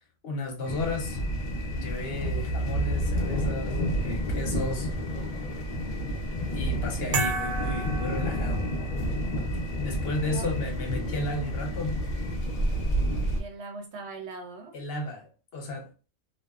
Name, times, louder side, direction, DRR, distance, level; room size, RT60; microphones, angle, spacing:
voice 1, 0.2-1.2 1.7-4.9 6.5-8.7 9.8-12.0 14.7-15.9, left 2 dB, 55° left, 0.8 m, -34 dB
sound 1, 0.6-13.4, equal, 70° left, 0.4 m, -30 dB
sound 2, 7.1-9.0, right 3 dB, 85° right, 1.1 m, -31 dB
voice 2, 13.4-14.7, right 3 dB, 60° right, 0.9 m, -40 dB
2.6 x 2.1 x 2.3 m
omnidirectional pair, 1.4 m